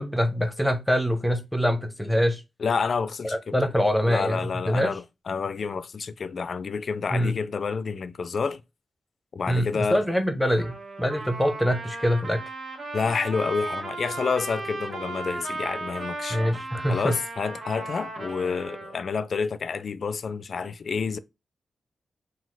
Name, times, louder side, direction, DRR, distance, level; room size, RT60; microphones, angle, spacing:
voice 1, 0.0-2.4 3.2-4.9 7.1-7.4 9.5-12.4 16.3-17.2, equal, ahead, 0.7 m, -24 dB
voice 2, 2.6-3.7 4.1-8.6 9.3-10.0 12.9-16.4 16.9-21.2, left 5 dB, 55° left, 0.3 m, -29 dB
Trumpet, 10.5-19.0, right 2 dB, 60° right, 1.3 m, -35 dB
4.0 x 2.3 x 4.6 m
wide cardioid pair, 145°, 0 cm